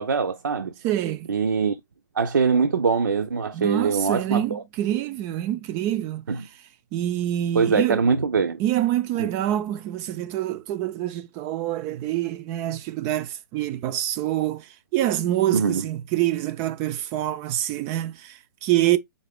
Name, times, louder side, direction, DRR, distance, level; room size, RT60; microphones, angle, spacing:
voice 1, 0.0-0.7 1.3-1.8 2.2-4.6 6.3-6.4 7.5-8.6 9.2-9.3 15.5-15.8, right 5 dB, 80° right, 0.5 m, -23 dB
voice 2, 0.8-1.3 3.5-6.5 6.9-8.0 8.6-19.0, right 13 dB, 25° right, 0.3 m, -26 dB
3.9 x 3.7 x 3.4 m
hypercardioid pair, 130°, 11 cm